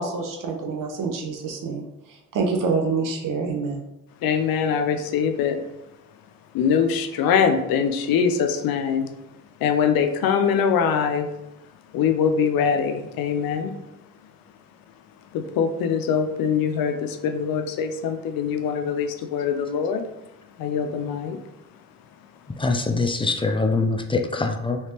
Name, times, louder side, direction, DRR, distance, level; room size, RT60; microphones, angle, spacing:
voice 1, 0.0-3.8, right 4 dB, 70° right, 2 dB, 0.8 m, -27 dB
voice 2, 4.2-5.6 6.5-9.1 9.6-11.3 11.9-13.7 15.3-20.0 20.6-21.4, left 7 dB, 85° left, 7 dB, 0.5 m, -23 dB
voice 3, 22.6-24.8, left 3 dB, 15° left, 5 dB, 0.4 m, -23 dB
3.2 x 3.2 x 2.9 m, 0.90 s
cardioid pair, 65°, 34 cm